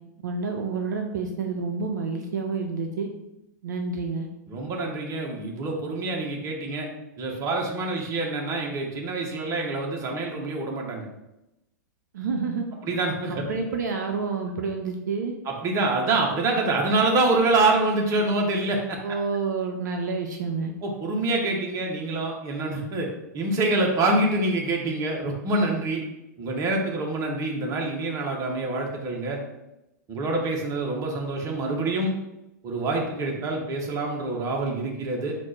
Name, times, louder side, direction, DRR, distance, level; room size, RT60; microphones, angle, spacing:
voice 1, 0.2-3.1 3.6-4.3 12.1-12.7 13.3-15.3 19.0-20.7, right 4 dB, 70° right, 3 dB, 0.5 m, -29 dB
voice 2, 4.5-6.9 7.2-11.1 12.8-13.5 15.5-19.0 20.8-23.1 23.3-26.0 26.4-29.4 30.1-32.1 32.6-35.3, right 2 dB, 30° right, 0 dB, 1.1 m, -26 dB
4.2 x 2.5 x 4.5 m, 0.91 s
hypercardioid pair, 105°, 10 cm